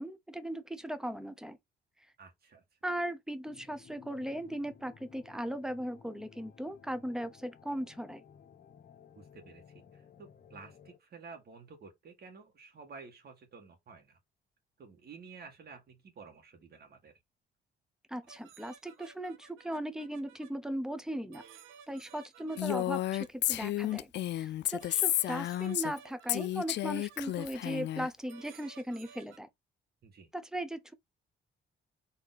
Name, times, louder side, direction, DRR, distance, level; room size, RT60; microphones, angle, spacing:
voice 1, 0.0-1.6 2.8-8.2 18.1-21.4 21.9-29.5 30.3-30.9, right 1 dB, 5° right, 0.8 m, -38 dB
voice 2, 2.2-2.6 9.1-9.6 9.9-14.2 14.8-17.1 30.0-30.3, right 5 dB, 55° right, 1.7 m, -52 dB
sound 1, 3.5-11.0, left 7 dB, 50° left, 1.1 m, -57 dB
sound 2, 18.3-20.5 21.3-24.0 24.8-27.5 28.3-29.4, right 8 dB, 90° right, 1.0 m, -56 dB
Female speech woman speaking, 22.6-26.0 26.3-28.1, left 14 dB, 65° left, 0.4 m, -32 dB
4.3 x 3.0 x 4.0 m
cardioid pair, 90°, 20 cm